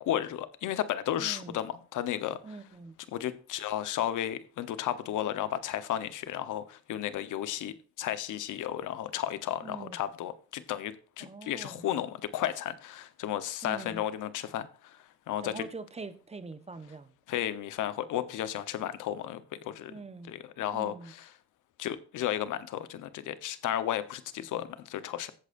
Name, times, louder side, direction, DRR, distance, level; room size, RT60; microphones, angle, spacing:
voice 1, 0.0-2.4 3.1-15.0 15.3-15.6 17.3-19.9 20.3-21.3 21.8-25.3, left 11 dB, 85° left, 1.1 m, -33 dB
voice 2, 1.2-1.6 2.4-2.9 9.6-10.0 11.2-11.9 13.6-14.0 15.4-17.1 19.9-20.3 20.7-21.1, right 4 dB, 20° right, 1.2 m, -43 dB
14.5 x 8.5 x 2.7 m
cardioid pair, 90°, 30 cm